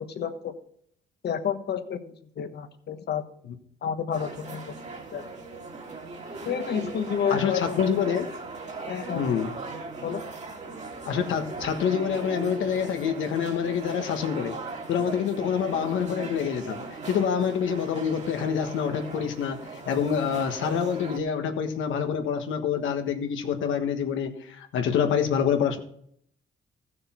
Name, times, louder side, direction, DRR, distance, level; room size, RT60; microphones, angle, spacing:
voice 1, 0.1-0.5 1.2-2.0 2.4-3.2 3.8-4.7 5.1-5.3 6.5-7.8 8.9-9.2 10.0-10.2, left 7 dB, 55° left, 8 dB, 1.3 m, -30 dB
sound 1, 4.1-21.2, right 3 dB, 35° right, 2.1 m, -39 dB
voice 2, 7.3-8.3 9.1-9.6 11.0-14.6 14.9-16.8 17.0-25.8, left 7 dB, 80° left, 6 dB, 1.5 m, -26 dB
15.0 x 6.6 x 4.4 m, 0.66 s
cardioid pair, 90°, 20 cm